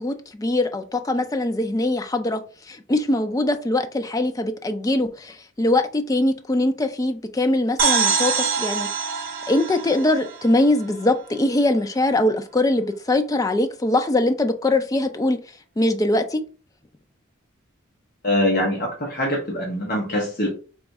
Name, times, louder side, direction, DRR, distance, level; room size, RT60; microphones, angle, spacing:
voice 1, 0.0-2.4 2.7-8.9 9.5-15.4 15.8-16.4, left 1 dB, 15° left, 7 dB, 0.3 m, -22 dB
sound 1, 7.8-11.4, right 5 dB, 45° right, 0.7 m, -25 dB
voice 2, 18.2-20.5, left 1 dB, 45° left, -1 dB, 0.8 m, -23 dB
3.4 x 2.3 x 4.1 m, 0.37 s
head